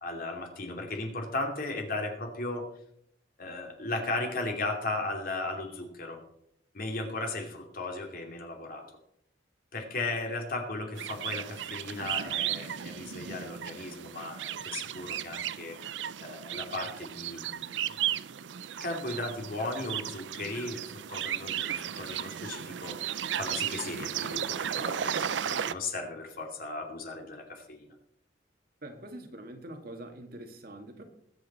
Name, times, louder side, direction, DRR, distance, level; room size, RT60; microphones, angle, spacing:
voice 1, 0.0-2.7 3.4-6.2 6.7-8.8 9.7-15.8 16.2-17.8 18.8-20.8 21.1-27.9, left 2 dB, 50° left, 2 dB, 2.7 m, -36 dB
sound 1, 10.9-25.7, right 9 dB, 80° right, 0.5 m, -35 dB
voice 2, 28.8-31.0, right 1 dB, 55° right, 4 dB, 2.0 m, -44 dB
21.0 x 8.7 x 4.2 m, 0.72 s
head